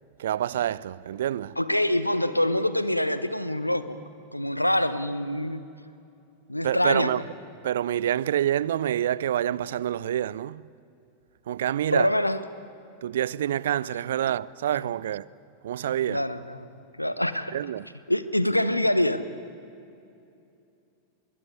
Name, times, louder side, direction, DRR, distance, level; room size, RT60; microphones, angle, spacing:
voice 1, 0.2-1.6 6.6-7.2 7.6-10.6 11.5-12.1 13.0-15.3 15.6-16.3 17.5-17.9, right 11 dB, 60° right, 0.5 m, -27 dB
voice 2, 1.6-4.0 4.3-5.6 6.5-7.1 11.9-12.4 14.8-14.9 16.1-16.7 17.0-17.6 18.1-19.2, left 1 dB, 85° left, 1.0 m, -25 dB
24.5 x 21.0 x 9.7 m
figure-of-eight pair, 90°, 0 cm